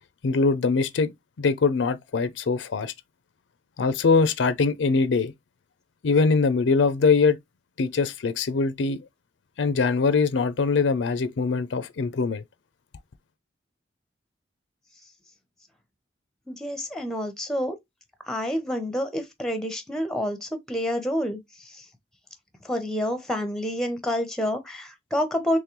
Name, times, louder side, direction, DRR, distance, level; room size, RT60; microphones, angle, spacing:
voice 1, 0.2-1.1 1.4-2.9 3.8-5.3 6.0-7.4 7.8-9.1 9.6-12.4, left 4 dB, 75° left, 0.4 m, -22 dB
voice 2, 16.5-17.8 18.3-21.8 22.6-25.6, equal, 5° left, 0.7 m, -28 dB
3.7 x 3.0 x 3.0 m
head